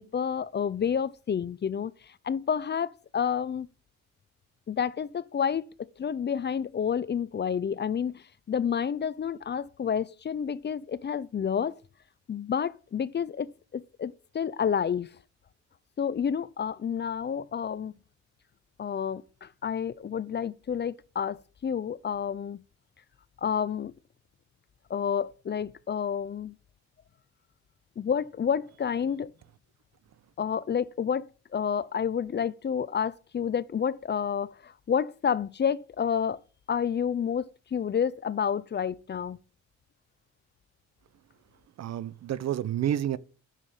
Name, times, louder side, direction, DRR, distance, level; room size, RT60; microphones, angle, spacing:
voice 1, 0.0-3.7 4.7-5.7 6.0-11.8 12.3-15.1 16.0-17.9 18.8-22.6 23.4-23.9 24.9-26.5 28.0-29.3 30.4-36.4 36.7-39.4, left 7 dB, 35° left, 0.6 m, -29 dB
voice 2, 41.8-43.2, right 11 dB, 60° right, 0.8 m, -29 dB
10.0 x 7.4 x 7.6 m
cardioid pair, 90°, 30 cm